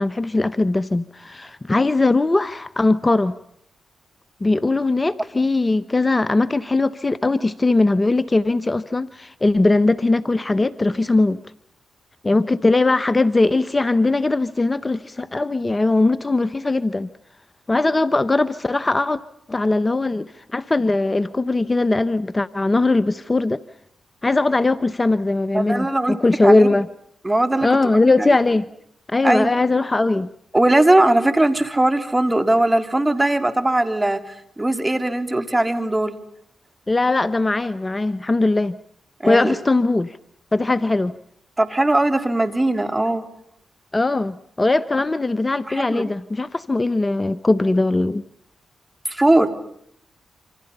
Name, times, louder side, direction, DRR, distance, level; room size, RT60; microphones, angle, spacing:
voice 1, 0.0-3.4 4.4-11.4 12.2-17.1 17.7-19.2 19.5-23.6 24.2-26.9 27.6-28.7 29.1-30.3 36.9-38.8 39.3-40.2 40.5-41.1 43.9-48.2, left 2 dB, 25° left, 14 dB, 1.0 m, -20 dB
voice 2, 25.5-26.1 26.4-26.7 27.2-27.7 28.0-28.4 29.2-29.5 30.5-34.2 34.6-36.2 39.2-39.5 41.6-43.3 45.7-46.1 49.1-49.5, right 1 dB, 20° right, 8 dB, 3.6 m, -19 dB
28.0 x 26.5 x 5.6 m, 0.71 s
supercardioid pair, 50°, 0 cm